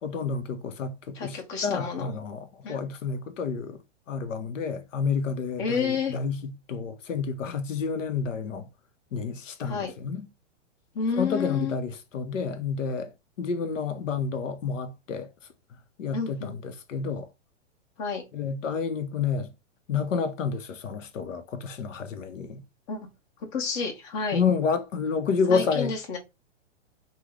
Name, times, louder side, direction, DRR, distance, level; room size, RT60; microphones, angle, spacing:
voice 1, 0.0-3.8 4.1-8.7 9.1-10.3 11.2-13.1 13.4-15.3 16.0-17.3 18.3-19.5 19.9-22.6 24.3-25.9, left 5 dB, 90° left, 0.8 m, -29 dB
voice 2, 1.1-2.1 2.6-2.8 5.6-6.1 9.6-9.9 10.9-11.8 16.1-16.5 18.0-18.2 22.9-23.0 23.5-24.4 25.5-26.2, left 5 dB, 40° left, 1.2 m, -30 dB
3.0 x 2.2 x 3.6 m
hypercardioid pair, 140°, 37 cm